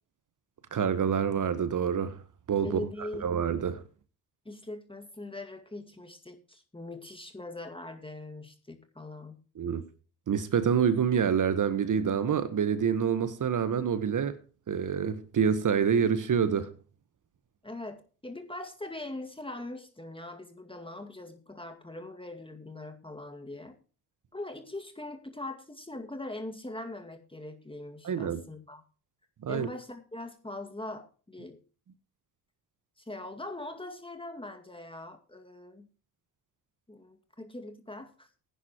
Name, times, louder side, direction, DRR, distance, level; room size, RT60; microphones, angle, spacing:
voice 1, 0.7-2.2 2.5-2.8 3.2-3.8 9.6-9.8 10.3-14.4 14.7-16.7 28.0-28.4 29.4-29.7, right 7 dB, 50° right, 1.3 m, -27 dB
voice 2, 2.6-3.3 4.5-9.4 17.6-23.8 24.3-28.8 29.5-31.6 33.0-35.9 36.9-38.3, left 2 dB, 15° left, 2.1 m, -41 dB
17.0 x 10.0 x 3.0 m
supercardioid pair, 55°, 41 cm